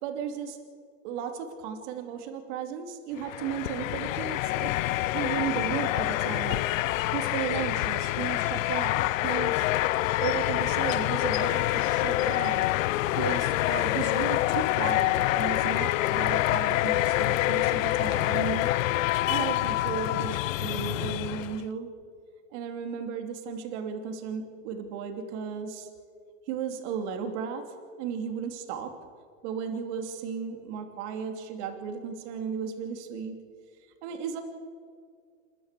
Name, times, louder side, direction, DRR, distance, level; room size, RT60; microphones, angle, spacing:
voice 1, 0.0-0.6 1.0-6.6 7.1-9.7 10.2-12.7 13.2-18.7 19.1-21.9 22.5-25.9 26.5-27.6 28.0-28.9 29.4-33.4 34.0-34.4, right 7 dB, 55° right, 5 dB, 2.9 m, -35 dB
sound 1, 3.2-21.6, left 16 dB, 75° left, 0.6 m, -26 dB
28.5 x 12.5 x 7.6 m, 2.1 s
supercardioid pair, 135°, 40 cm